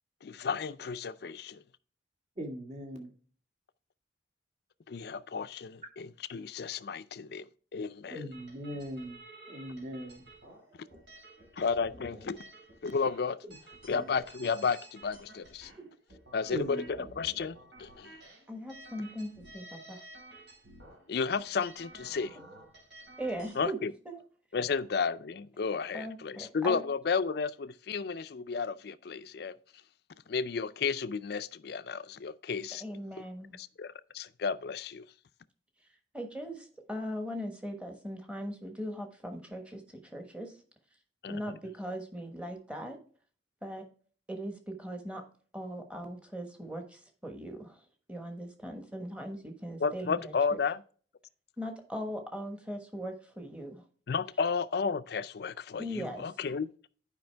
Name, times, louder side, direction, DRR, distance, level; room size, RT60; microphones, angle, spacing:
voice 1, 0.2-1.6 4.9-7.5 7.7-8.2 11.6-12.4 12.8-13.4 13.9-15.7 16.3-18.1 21.1-22.4 23.6-23.9 24.5-29.5 30.3-32.8 33.6-35.0 41.2-41.6 49.8-50.8 54.1-56.7, left 5 dB, 55° left, 0.4 m, -33 dB
voice 2, 2.4-3.1 8.1-9.2 9.4-11.0 11.4-11.5 13.9-14.1 15.8-15.9 16.5-17.0, equal, 35° right, 1.7 m, -41 dB
sound 1, 8.3-23.6, right 1 dB, 70° right, 3.1 m, -53 dB
voice 3, 18.5-20.0 23.2-23.8 24.0-24.2 25.9-26.8 32.8-33.6 36.1-40.5 41.3-43.0 43.6-43.8 44.3-45.2 45.5-50.3 51.6-53.8 55.8-56.3, equal, 5° right, 1.2 m, -39 dB
10.5 x 5.1 x 3.3 m
head